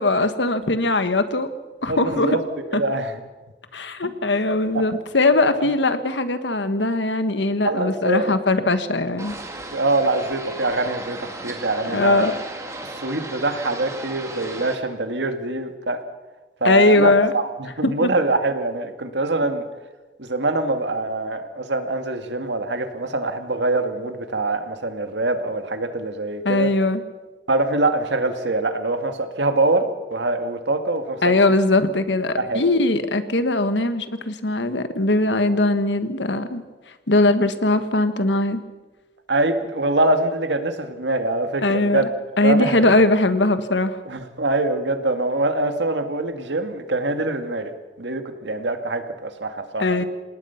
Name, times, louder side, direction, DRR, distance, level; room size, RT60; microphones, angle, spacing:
voice 1, 0.0-1.5 1.8-2.4 2.7-2.8 3.7-9.3 11.9-12.3 16.6-17.3 17.8-18.1 26.4-27.0 31.2-36.6 37.1-38.6 41.6-42.1 42.4-44.0 49.8-50.0, left 2 dB, 90° left, 10 dB, 1.6 m, -20 dB
voice 2, 1.9-2.4 2.7-3.2 4.0-4.1 4.7-4.8 7.6-8.3 9.6-12.3 12.8-16.0 16.6-19.7 20.2-26.7 27.5-31.3 32.4-32.6 39.3-42.1 42.4-42.9 44.1-47.7 48.0-50.1, right 2 dB, 85° right, 7 dB, 2.1 m, -24 dB
sound 1, 9.2-14.8, right 2 dB, 15° right, 2.4 m, -35 dB
27.0 x 19.5 x 5.9 m, 1.2 s
head